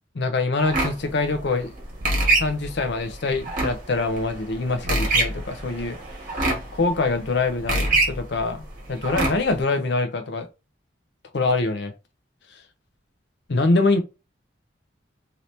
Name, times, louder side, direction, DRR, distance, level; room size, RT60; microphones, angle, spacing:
voice 1, 0.1-1.7 2.3-6.0 6.7-10.5 11.3-11.9 13.5-14.0, left 3 dB, 65° left, 0.6 m, -24 dB
sound 1, 0.6-9.6, right 2 dB, 45° right, 1.1 m, -26 dB
2.9 x 2.8 x 3.1 m
head